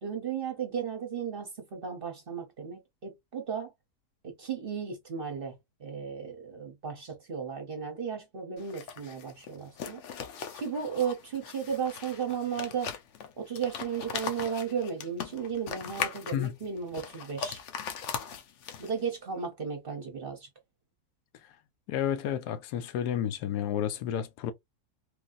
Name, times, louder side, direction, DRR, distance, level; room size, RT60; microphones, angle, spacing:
voice 1, 0.0-3.7 4.2-10.0 10.5-12.9 13.4-17.6 18.8-20.5, right 7 dB, 50° right, 0.7 m, -35 dB
sound 1, 8.6-19.1, left 7 dB, 65° left, 0.8 m, -39 dB
voice 2, 21.9-24.5, left 10 dB, 85° left, 1.1 m, -31 dB
3.2 x 2.6 x 2.4 m
omnidirectional pair, 1.7 m